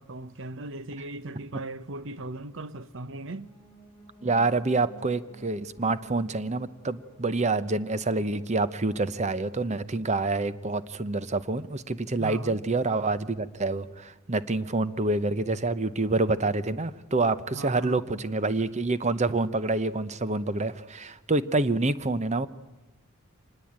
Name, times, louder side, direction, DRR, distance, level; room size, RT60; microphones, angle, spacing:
voice 1, 0.0-3.5 12.2-12.6 17.5-18.1, right 2 dB, 60° right, 0.9 m, -38 dB
sound 1, 3.3-9.3, right 4 dB, 5° left, 6.2 m, -52 dB
voice 2, 4.2-22.5, right 3 dB, 30° right, 0.9 m, -27 dB
25.5 x 20.0 x 8.8 m
head